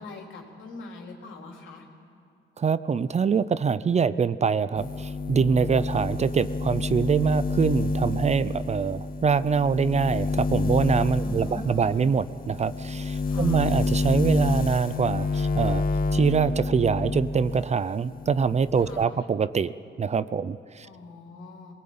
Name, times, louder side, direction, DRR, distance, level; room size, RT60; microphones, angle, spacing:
voice 1, 0.0-1.9 11.2-12.1 13.3-13.7 18.8-19.2 20.8-21.7, left 3 dB, 75° left, 1 dB, 3.6 m, -42 dB
voice 2, 2.6-15.8 16.1-20.9, right 6 dB, 35° right, 15 dB, 0.6 m, -24 dB
sound 1, 4.8-17.7 18.0-19.1, left 3 dB, 45° left, 0.9 m, -28 dB
23.0 x 19.0 x 8.7 m, 2.5 s
cardioid pair, 90°, 20 cm